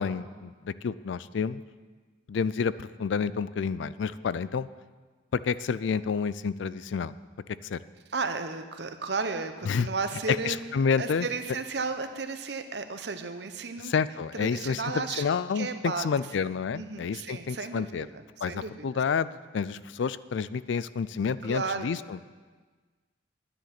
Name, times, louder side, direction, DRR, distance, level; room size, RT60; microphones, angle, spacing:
voice 1, 0.0-1.6 2.3-4.7 5.4-7.1 7.7-7.8 9.7-9.9 10.3-11.3 13.8-18.1 18.4-22.2, left 6 dB, 80° left, 17 dB, 0.4 m, -29 dB
voice 2, 8.1-10.6 11.0-13.9 14.3-15.3 15.5-16.1 16.7-18.9 21.4-21.9, right 4 dB, 65° right, 8 dB, 0.8 m, -33 dB
10.0 x 10.0 x 5.9 m, 1.4 s
head